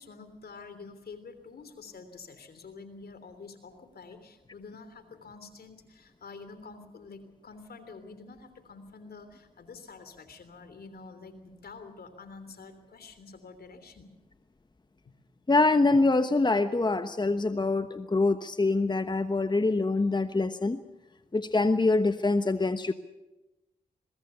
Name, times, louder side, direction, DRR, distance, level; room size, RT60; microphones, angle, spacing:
voice 1, 0.0-14.1 15.0-15.1, left 4 dB, 65° left, 11 dB, 3.2 m, -48 dB
voice 2, 15.5-20.8 21.3-22.9, left 3 dB, 25° left, 10 dB, 1.1 m, -25 dB
22.5 x 21.0 x 6.9 m, 1.0 s
supercardioid pair, 45°, 17 cm